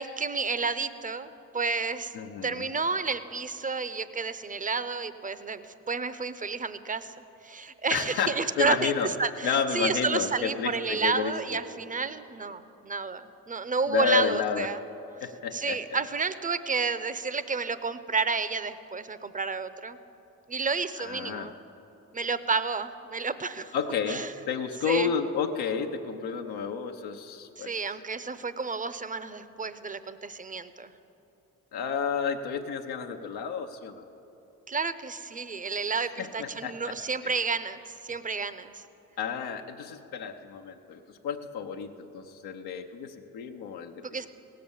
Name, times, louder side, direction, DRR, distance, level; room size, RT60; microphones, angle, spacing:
voice 1, 0.0-7.1 7.4-8.9 9.2-14.8 15.5-20.0 20.5-21.5 22.1-23.7 24.1-24.3 24.8-25.1 27.6-30.9 34.7-38.8 44.0-44.3, right 4 dB, 20° right, 14 dB, 0.7 m, -31 dB
voice 2, 2.1-2.7 7.9-9.1 9.4-11.6 13.9-14.7 15.2-15.8 21.0-21.5 23.7-27.7 31.7-34.0 35.9-37.0 37.2-37.3 39.2-44.3, left 6 dB, 80° left, 3 dB, 0.8 m, -31 dB
17.0 x 7.7 x 7.1 m, 3.0 s
supercardioid pair, 50°, 37 cm